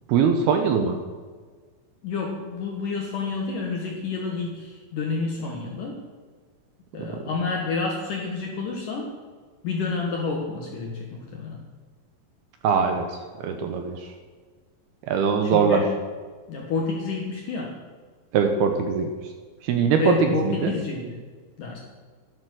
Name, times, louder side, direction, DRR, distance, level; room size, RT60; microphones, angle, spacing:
voice 1, 0.1-1.0 7.0-7.1 12.6-14.1 15.0-15.8 18.3-19.1 19.6-20.7, right 6 dB, 75° right, 5 dB, 2.5 m, -22 dB
voice 2, 2.0-6.0 6.9-9.1 9.6-11.6 15.4-15.9 16.5-17.8 19.9-21.2 21.6-21.8, left 4 dB, 65° left, 0 dB, 2.2 m, -29 dB
12.0 x 11.5 x 6.2 m, 1.5 s
omnidirectional pair, 5.4 m